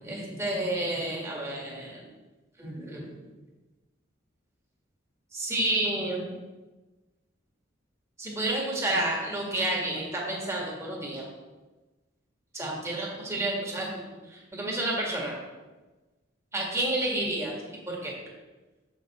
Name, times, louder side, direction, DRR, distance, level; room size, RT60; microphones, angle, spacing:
voice 1, 0.0-2.0 2.6-3.1 5.3-6.4 8.2-11.2 12.5-15.4 16.5-17.6 17.9-18.1, right 1 dB, 15° right, -3 dB, 1.8 m, -30 dB
7.4 x 6.8 x 4.3 m, 1.2 s
head